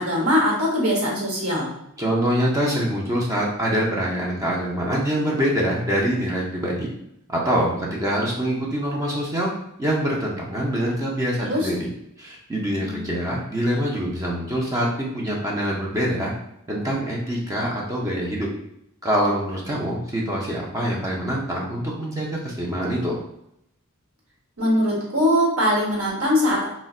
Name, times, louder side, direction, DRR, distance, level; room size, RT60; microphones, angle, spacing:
voice 1, 0.0-1.7 11.4-11.7 12.8-13.2 24.6-26.7, equal, 65° right, -3 dB, 1.1 m, -22 dB
voice 2, 2.0-6.9 7.3-9.5 9.8-11.9 12.2-16.3 16.7-18.5 19.0-23.2, equal, 15° right, -3 dB, 0.5 m, -24 dB
3.8 x 2.1 x 2.3 m, 0.78 s
head